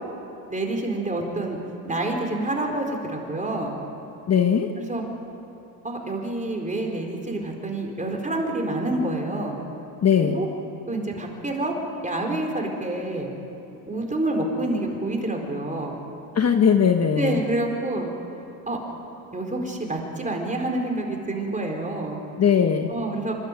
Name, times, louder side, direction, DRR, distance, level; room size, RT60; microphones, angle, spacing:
voice 1, 0.5-1.6 1.8-3.7 4.8-5.1 5.8-9.6 10.3-10.5 10.9-11.7 12.0-13.3 13.9-16.0 17.2-18.1 18.7-18.8 19.3-22.2 22.9-23.4, right 2 dB, 15° right, 2 dB, 4.5 m, -27 dB
voice 2, 4.3-4.7 10.0-10.4 16.3-17.4 22.4-22.9, left 7 dB, 35° left, 6 dB, 1.3 m, -19 dB
27.0 x 12.5 x 9.3 m, 2.9 s
supercardioid pair, 80°, 44 cm